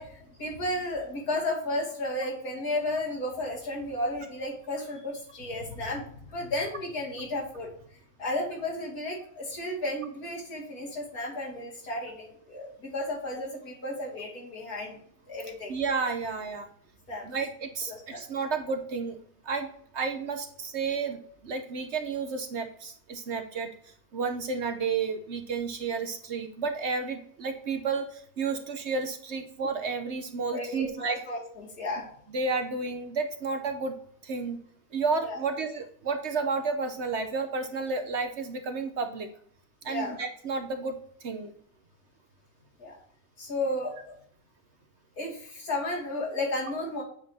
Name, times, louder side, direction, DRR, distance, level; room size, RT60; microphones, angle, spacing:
voice 1, 0.0-7.7 8.2-15.0 15.3-15.7 17.1-17.3 17.9-18.2 30.5-32.0 35.2-35.4 39.8-40.2 42.8-43.0 43.4-44.2 45.2-47.0, left 1 dB, 80° left, -3 dB, 2.7 m, -33 dB
voice 2, 15.7-16.7 17.2-19.2 19.4-19.7 19.9-23.7 24.1-31.2 32.3-33.9 34.2-34.6 34.9-39.3 39.8-41.5, right 4 dB, 55° right, 7 dB, 0.9 m, -31 dB
7.9 x 5.4 x 2.7 m, 0.62 s
omnidirectional pair, 1.6 m